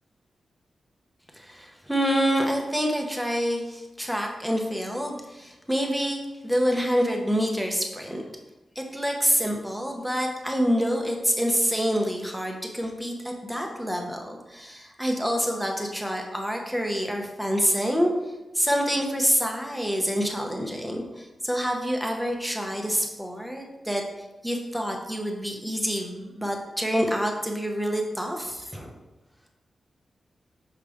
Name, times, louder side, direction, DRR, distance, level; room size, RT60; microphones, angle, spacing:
voice 1, 1.3-8.2 8.8-18.1 18.5-24.0 24.4-29.0, equal, ahead, 1 dB, 0.8 m, -27 dB
6.4 x 5.0 x 3.5 m, 1.0 s
wide cardioid pair, 150°, 0 cm